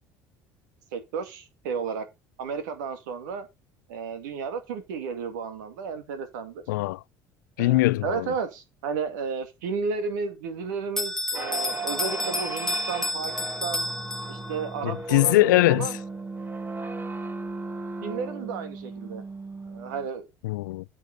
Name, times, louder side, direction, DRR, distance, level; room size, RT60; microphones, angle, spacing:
voice 1, 0.9-2.0 2.4-3.5 3.9-6.6 7.6-13.3 13.6-13.9 14.3-15.3 15.7-16.0 18.0-19.2 19.7-20.3, right 5 dB, 85° right, 2.3 m, -33 dB
voice 2, 6.7-7.0 7.6-8.3 14.8-15.9 20.4-20.8, left 18 dB, 85° left, 0.4 m, -22 dB
Bell, 11.0-14.7, left 1 dB, 5° left, 1.7 m, -30 dB
sound 1, 11.3-20.1, right 3 dB, 20° right, 1.8 m, -36 dB
9.6 x 6.2 x 5.4 m
hypercardioid pair, 75°, 10 cm